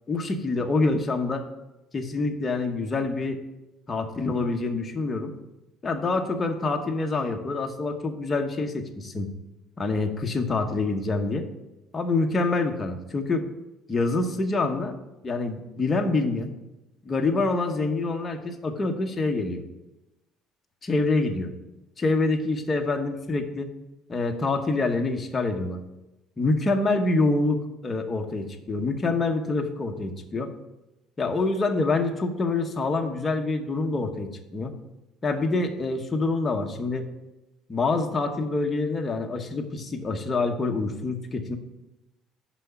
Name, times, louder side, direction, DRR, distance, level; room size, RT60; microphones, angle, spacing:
voice 1, 0.1-1.4 1.9-3.4 3.9-5.3 5.8-9.3 9.8-11.5 11.9-13.4 13.9-14.9 15.2-16.5 17.0-19.6 20.8-21.5 22.0-23.7 24.1-25.8 26.4-30.5 31.2-34.7 35.2-37.1 37.7-41.6, left 3 dB, 20° left, 3 dB, 0.8 m, -26 dB
6.1 x 5.6 x 6.8 m, 0.97 s
cardioid pair, 160°, 0 cm